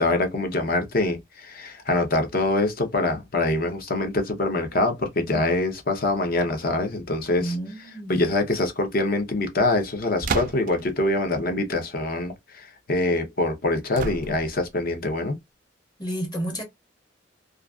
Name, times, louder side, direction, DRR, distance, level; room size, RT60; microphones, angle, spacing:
voice 1, 0.0-7.6 8.1-15.4, left 2 dB, 50° left, 0.7 m, -24 dB
voice 2, 7.4-8.2 16.0-16.6, right 1 dB, 25° left, 0.9 m, -30 dB
sound 1, 10.2-10.9 14.0-14.7, right 4 dB, 45° right, 0.3 m, -30 dB
2.4 x 2.4 x 2.2 m
head